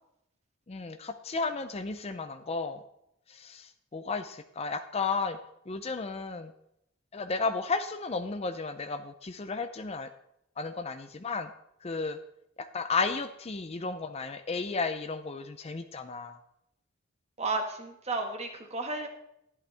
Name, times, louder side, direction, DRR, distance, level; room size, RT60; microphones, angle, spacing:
voice 1, 0.7-2.8 3.3-5.4 5.7-6.5 7.1-10.1 10.6-11.5 11.8-12.2 12.6-16.4, left 4 dB, 30° left, 9 dB, 0.5 m, -33 dB
voice 2, 17.4-19.1, right 3 dB, 30° right, 4 dB, 1.6 m, -33 dB
11.5 x 11.0 x 3.4 m, 0.78 s
head